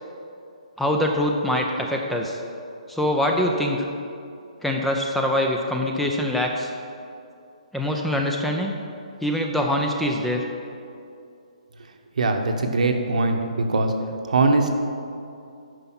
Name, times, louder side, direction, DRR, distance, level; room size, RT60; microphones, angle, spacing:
voice 1, 0.8-2.4 2.9-3.9 4.6-6.7 7.7-8.7 9.2-10.5, left 1 dB, ahead, 1 dB, 0.5 m, -24 dB
voice 2, 12.2-13.9 14.3-14.8, right 3 dB, 75° right, 4 dB, 1.1 m, -21 dB
9.8 x 5.5 x 5.9 m, 2.6 s
hypercardioid pair, 155°, 4 cm